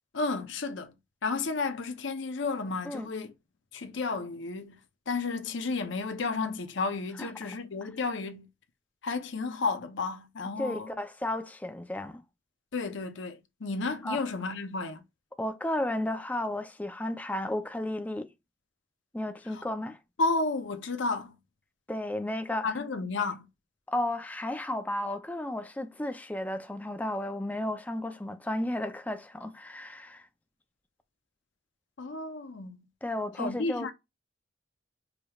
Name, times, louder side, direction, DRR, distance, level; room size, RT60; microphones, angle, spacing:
voice 1, 0.1-0.9 1.2-3.3 3.7-4.8 5.1-8.5 9.0-10.9 12.7-15.0 19.5-19.6 20.2-21.3 22.6-23.5 32.0-32.8 33.4-33.9, left 3 dB, 65° left, 0.7 m, -32 dB
voice 2, 7.2-7.5 10.6-12.2 14.0-14.2 15.4-18.3 19.1-20.0 21.9-22.7 23.9-30.3 33.0-33.9, left 1 dB, 10° left, 0.4 m, -33 dB
5.0 x 3.0 x 2.3 m
head